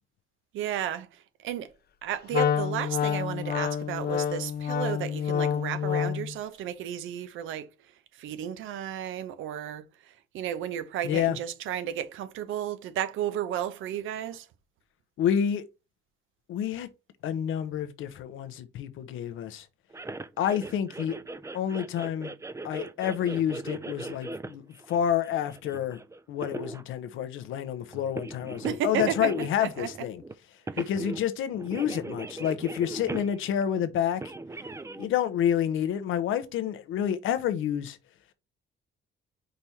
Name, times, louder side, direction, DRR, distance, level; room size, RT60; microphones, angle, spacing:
voice 1, 0.5-1.7 2.0-7.7 8.1-14.5 28.6-29.9 30.7-30.9, right 10 dB, 90° right, 0.9 m, -33 dB
Wind instrument woodwind instrument, 2.3-6.4, left 8 dB, 55° left, 0.5 m, -28 dB
voice 2, 11.0-11.4 15.2-15.6 16.5-16.9 17.2-19.6 20.4-21.1 21.5-22.3 22.6-26.0 26.3-30.2 30.8-34.2 35.0-38.0, left 9 dB, 85° left, 1.0 m, -28 dB
sound 1, 19.9-26.8 27.9-30.3 30.7-31.3 31.5-33.6 34.2-35.1, right 2 dB, 15° right, 0.5 m, -39 dB
5.3 x 4.2 x 4.5 m
cardioid pair, 90°, 20 cm